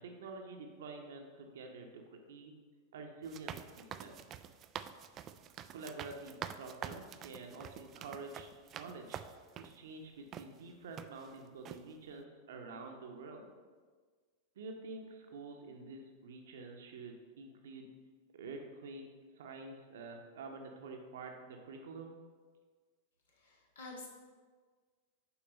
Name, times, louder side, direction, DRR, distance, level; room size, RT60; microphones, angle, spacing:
voice 1, 0.0-2.5 2.9-4.2 5.7-8.5 8.7-9.2 9.6-13.5 14.6-17.9 18.3-19.1 19.3-22.2, right 3 dB, 60° right, 3 dB, 0.9 m, -48 dB
sound 1, 3.2-9.8 10.3-10.5 11.0-11.4 11.7-11.8, right 9 dB, 30° right, 0.3 m, -47 dB
voice 2, 23.3-24.1, left 2 dB, 65° left, -2 dB, 1.7 m, -49 dB
7.1 x 4.7 x 5.2 m, 1.5 s
figure-of-eight pair, 90°, 0 cm